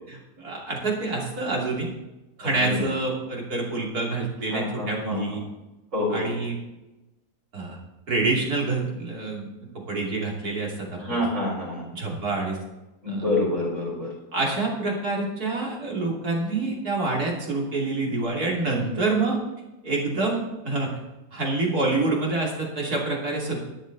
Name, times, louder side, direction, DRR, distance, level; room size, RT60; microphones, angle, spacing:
voice 1, 0.1-1.9 2.4-5.4 6.1-6.6 7.5-7.8 8.1-9.5 9.9-11.2 11.9-12.6 13.1-13.2 14.3-19.4 19.8-21.0 21.3-23.6, right 3 dB, 85° right, -2 dB, 3.4 m, -27 dB
voice 2, 2.4-2.9 4.5-5.4 5.9-6.3 10.9-11.9 13.0-14.1, left 2 dB, 60° right, -4 dB, 4.9 m, -27 dB
13.0 x 10.0 x 4.0 m, 1.0 s
omnidirectional pair, 1.6 m